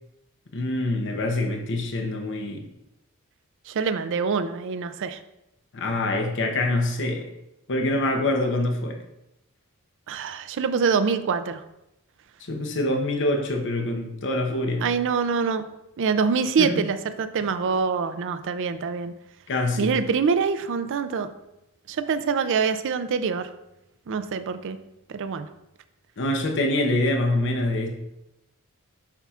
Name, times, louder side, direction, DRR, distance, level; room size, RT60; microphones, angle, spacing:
voice 1, 0.5-2.6 5.7-7.3 7.7-9.0 12.4-14.8 16.6-16.8 19.5-20.0 26.2-27.9, left 1 dB, 55° left, 3 dB, 0.8 m, -25 dB
voice 2, 3.7-5.2 10.1-11.6 14.8-15.6 16.0-19.1 19.8-21.3 21.9-23.5 24.1-24.8 25.1-25.5, right 5 dB, 60° right, 11 dB, 0.4 m, -25 dB
7.1 x 5.5 x 2.4 m, 0.89 s
head